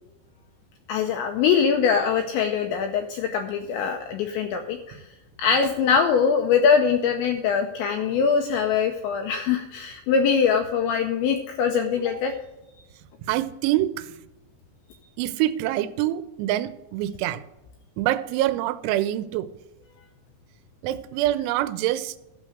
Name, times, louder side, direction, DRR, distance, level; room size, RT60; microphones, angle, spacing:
voice 1, 0.9-5.0 5.4-12.3, left 6 dB, 85° left, 5 dB, 2.6 m, -22 dB
voice 2, 13.2-14.1 15.2-17.4 18.0-19.5 20.8-22.2, right 14 dB, 85° right, 14 dB, 3.3 m, -25 dB
12.0 x 6.4 x 6.4 m, 0.98 s
omnidirectional pair, 6.0 m